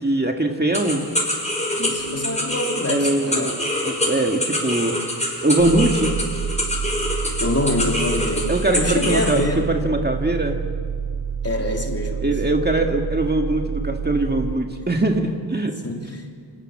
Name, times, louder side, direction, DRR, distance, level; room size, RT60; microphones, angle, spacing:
voice 1, 0.0-1.0 2.9-5.0 5.4-6.1 8.5-10.6 12.2-15.7, right 2 dB, 20° right, 3 dB, 1.9 m, -22 dB
sound 1, 0.7-9.4, left 1 dB, 15° left, 5.5 m, -26 dB
voice 2, 1.8-3.5 7.4-9.7 11.4-12.3 15.8-16.3, left 1 dB, 30° left, 2 dB, 3.5 m, -25 dB
sound 2, 5.6-14.6, right 7 dB, 70° right, 1.8 m, -28 dB
27.0 x 26.5 x 7.5 m, 2.1 s
wide cardioid pair, 85°, 46 cm